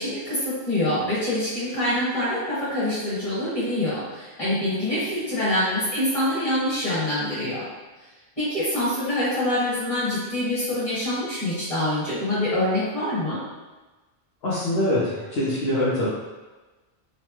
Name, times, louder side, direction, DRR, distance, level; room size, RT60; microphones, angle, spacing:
voice 1, 0.0-7.7 8.4-13.4, left 1 dB, 30° left, -10 dB, 1.5 m, -25 dB
voice 2, 14.4-16.1, left 1 dB, 70° left, -9 dB, 0.9 m, -24 dB
3.1 x 2.1 x 2.9 m, 1.2 s
omnidirectional pair, 1.1 m